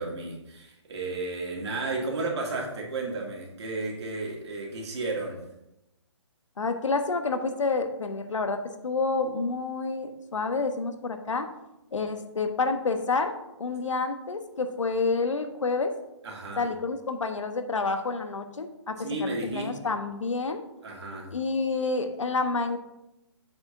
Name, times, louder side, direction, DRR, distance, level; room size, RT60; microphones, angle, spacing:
voice 1, 0.0-5.4 16.2-16.7 19.0-19.7 20.8-21.4, right 3 dB, 60° right, -2 dB, 2.6 m, -33 dB
voice 2, 6.6-11.5 11.9-13.3 13.6-15.9 16.6-20.6 21.3-22.8, left 4 dB, 85° left, 7 dB, 1.1 m, -29 dB
8.3 x 7.9 x 2.7 m, 0.88 s
hypercardioid pair, 155°, 16 cm